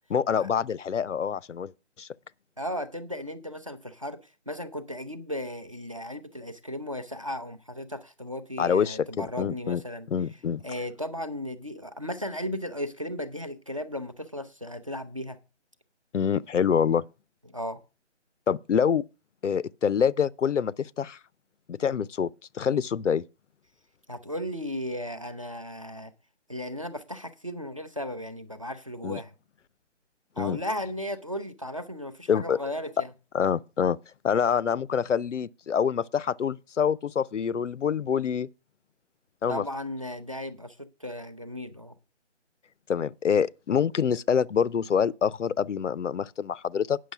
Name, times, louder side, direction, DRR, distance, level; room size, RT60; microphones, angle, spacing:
voice 1, 0.1-1.7 2.0-2.1 8.6-9.8 10.1-10.6 16.1-17.1 18.5-19.0 19.4-21.2 21.7-23.2 29.0-29.2 30.4-30.6 32.3-32.6 33.3-34.0 34.2-38.5 39.4-39.6 42.9-47.0, left 7 dB, 90° left, 0.6 m, -26 dB
voice 2, 2.6-4.2 4.5-10.1 10.6-15.4 17.5-17.8 24.1-26.1 26.5-29.3 30.4-33.1 39.5-41.9, left 1 dB, 30° right, 0.6 m, -35 dB
9.3 x 6.3 x 5.9 m
figure-of-eight pair, 170°, 36 cm